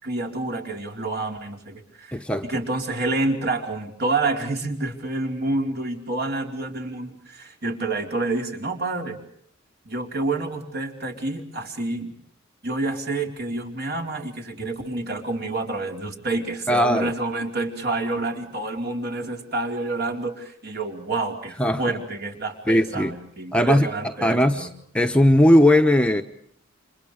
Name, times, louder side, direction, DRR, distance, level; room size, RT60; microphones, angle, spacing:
voice 1, 0.0-9.2 9.8-12.2 12.6-24.7, right 2 dB, 50° right, 4.7 m, -28 dB
voice 2, 2.1-2.5 16.7-17.1 21.6-21.8 22.7-23.1 23.5-23.9 24.2-24.7 24.9-26.2, left 1 dB, 5° left, 1.1 m, -18 dB
30.0 x 27.5 x 5.0 m
head